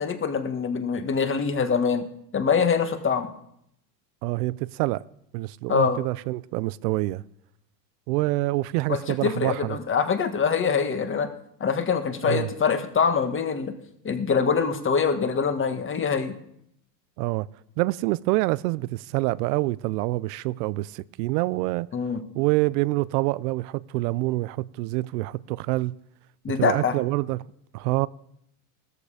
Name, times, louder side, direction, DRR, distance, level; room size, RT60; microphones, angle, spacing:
voice 1, 0.0-2.0 2.3-3.3 5.7-6.0 8.9-11.3 11.6-13.7 14.0-16.4 21.9-22.2 26.4-27.0, left 6 dB, 25° left, 1.7 m, -24 dB
voice 2, 4.2-5.0 5.3-7.2 8.1-9.8 12.2-12.5 17.2-17.5 17.8-21.9 22.3-25.9 26.6-27.4 27.7-28.1, right 20 dB, 70° right, 0.6 m, -26 dB
16.5 x 13.5 x 4.9 m
supercardioid pair, 105°, 48 cm